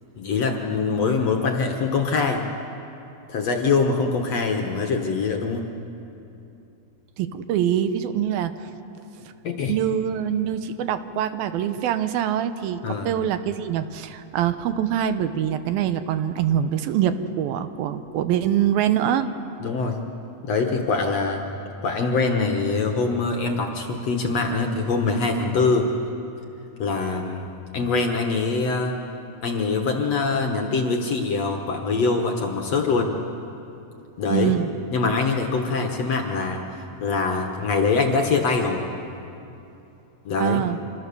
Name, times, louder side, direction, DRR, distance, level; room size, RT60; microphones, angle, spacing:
voice 1, 0.2-2.4 3.3-5.7 9.4-9.8 12.8-13.1 19.6-20.0 20.4-21.5 21.8-25.9 26.8-27.5 27.7-28.9 29.4-33.2 34.2-34.5 34.9-38.9 40.3-40.6, left 4 dB, 55° left, 3 dB, 2.1 m, -23 dB
voice 2, 7.2-8.5 9.7-19.3 34.3-34.7 40.4-40.8, right 10 dB, 80° right, 10 dB, 2.7 m, -24 dB
26.5 x 26.0 x 7.0 m, 2.8 s
omnidirectional pair, 4.3 m